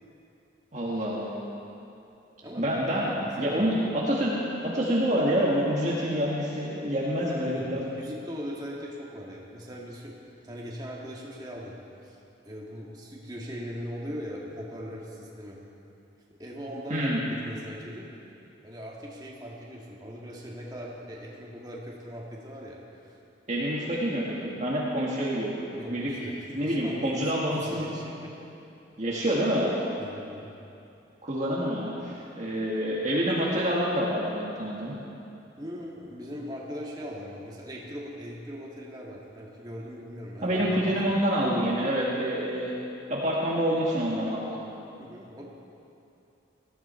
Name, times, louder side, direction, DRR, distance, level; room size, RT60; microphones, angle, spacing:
voice 1, 0.7-1.4 2.6-7.8 16.9-17.2 23.5-25.5 25.9-26.1 26.5-28.0 29.0-29.7 31.2-34.9 40.4-42.7 43.1-44.6, equal, 40° right, -5 dB, 1.7 m, -27 dB
voice 2, 2.4-2.7 3.4-3.7 7.1-11.8 12.0-12.2 12.5-15.6 16.3-18.1 18.6-23.1 23.5-23.7 25.7-28.3 30.0-30.5 35.6-40.9 45.0-45.4, equal, 20° right, -4 dB, 2.0 m, -40 dB
19.0 x 13.5 x 4.4 m, 2.8 s
head